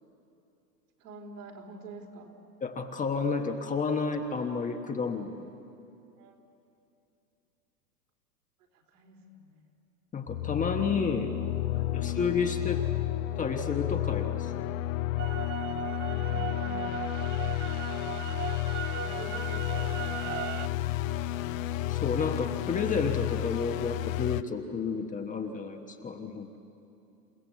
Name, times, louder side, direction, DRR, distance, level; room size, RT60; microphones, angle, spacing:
voice 1, 1.0-2.3 6.2-6.3 8.9-9.7 11.7-12.1 12.7-13.0 16.1-16.9 18.0-18.5 19.0-20.9, right 2 dB, 65° right, 0 dB, 4.3 m, -48 dB
voice 2, 2.6-5.5 10.1-11.3 11.9-12.8 13.4-14.5 21.9-26.6, left 5 dB, 15° left, 4 dB, 1.1 m, -31 dB
sound 1, 10.3-24.4, left 14 dB, 55° left, 0.8 m, -32 dB
sound 2, 15.2-20.7, right 13 dB, 50° right, 0.7 m, -38 dB
28.5 x 16.0 x 8.2 m, 2.7 s
hypercardioid pair, 110°, 48 cm